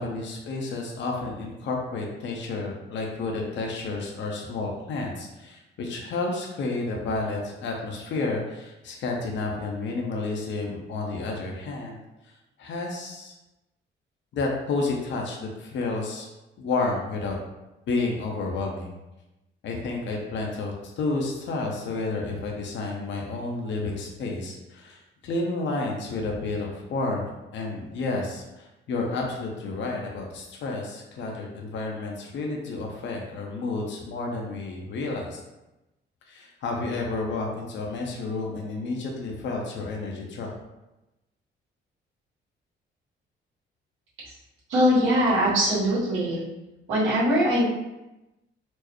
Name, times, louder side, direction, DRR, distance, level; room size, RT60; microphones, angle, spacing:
voice 1, 0.0-12.0 12.6-13.3 14.3-16.3 16.6-17.4 17.9-18.9 19.6-35.4 36.3-40.5, left 3 dB, 70° left, 0 dB, 0.7 m, -31 dB
voice 2, 44.7-46.4 46.9-47.6, equal, 85° right, -7 dB, 1.5 m, -21 dB
4.4 x 2.1 x 3.0 m, 0.98 s
cardioid pair, 90°, 20 cm